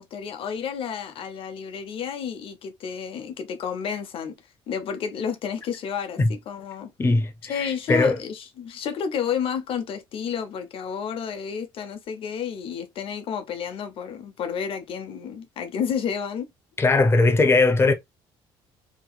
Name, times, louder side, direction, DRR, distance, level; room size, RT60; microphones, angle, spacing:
voice 1, 0.0-4.3 4.7-6.9 7.5-16.5, left 7 dB, 60° left, 0.7 m, -31 dB
voice 2, 7.0-8.2 16.8-17.9, left 3 dB, 25° left, 0.7 m, -20 dB
2.9 x 2.8 x 2.3 m
supercardioid pair, 75°, 11 cm